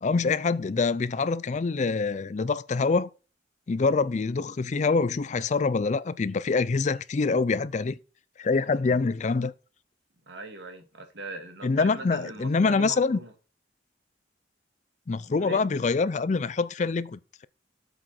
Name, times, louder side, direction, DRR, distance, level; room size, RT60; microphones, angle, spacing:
voice 1, 0.0-3.1 3.7-8.0 8.4-9.5 11.6-13.2 15.1-17.5, left 4 dB, 40° left, 0.4 m, -25 dB
voice 2, 10.3-13.3 15.2-15.6, right 2 dB, 70° right, 2.0 m, -40 dB
8.0 x 6.1 x 4.4 m
head